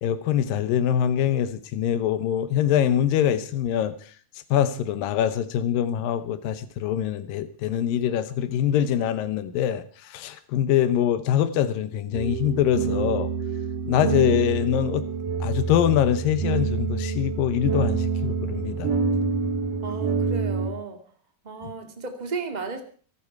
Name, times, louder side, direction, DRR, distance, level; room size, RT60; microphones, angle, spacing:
voice 1, 0.0-4.1 4.5-13.3 13.9-15.1 15.4-18.9 21.6-21.7, left 10 dB, 90° left, 2.7 m, -24 dB
sound 1, 12.1-20.7, right 5 dB, 70° right, 4.3 m, -27 dB
voice 2, 19.8-21.0 21.4-22.8, right 4 dB, 15° right, 1.8 m, -34 dB
24.0 x 12.0 x 4.6 m
omnidirectional pair, 3.9 m